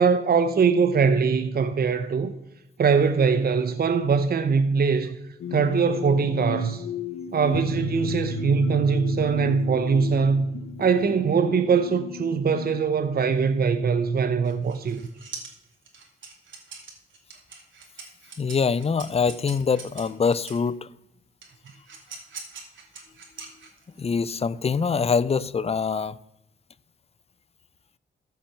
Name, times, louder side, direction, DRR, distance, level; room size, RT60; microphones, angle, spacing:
voice 1, 0.0-2.3 2.8-5.2 5.5-6.8 7.3-10.4 10.8-15.0, right 5 dB, 50° right, 0.8 m, -22 dB
sound 1, 5.4-13.5, left 4 dB, 80° left, 0.9 m, -34 dB
sound 2, 14.4-20.7 21.4-24.0, right 4 dB, 70° right, 2.7 m, -43 dB
voice 2, 18.4-20.9 24.0-26.2, left 5 dB, 30° left, 0.5 m, -24 dB
14.5 x 5.9 x 5.8 m
cardioid pair, 70°, 20 cm